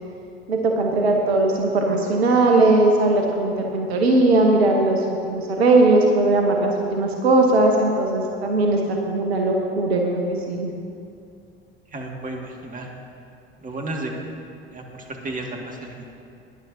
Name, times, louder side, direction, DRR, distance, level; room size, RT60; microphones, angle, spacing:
voice 1, 0.5-10.7, right 2 dB, 75° right, 2 dB, 1.0 m, -19 dB
voice 2, 11.9-12.9 13.6-14.3 14.7-16.1, right 2 dB, 25° right, 0 dB, 2.0 m, -33 dB
18.5 x 10.5 x 2.7 m, 2.5 s
figure-of-eight pair, 65°, 32 cm